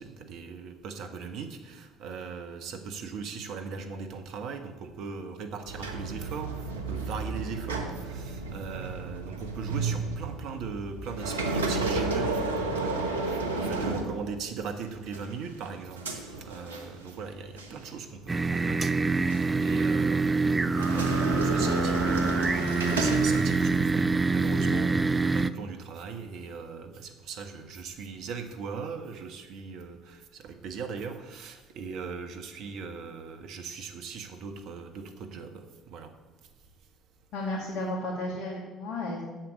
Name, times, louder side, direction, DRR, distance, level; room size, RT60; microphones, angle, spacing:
voice 1, 0.0-36.1, right 5 dB, 60° right, 7 dB, 1.4 m, -39 dB
sound 1, 5.7-14.7 15.1-17.3 17.6-17.8 18.5-19.5 20.6-24.0, right 3 dB, 90° right, 1.0 m, -32 dB
sound 2, 18.3-25.5, right 3 dB, 20° right, 0.5 m, -25 dB
voice 2, 37.3-39.2, left 1 dB, 60° left, -2 dB, 2.3 m, -33 dB
9.0 x 7.8 x 7.8 m, 1.2 s
hypercardioid pair, 55°, 0 cm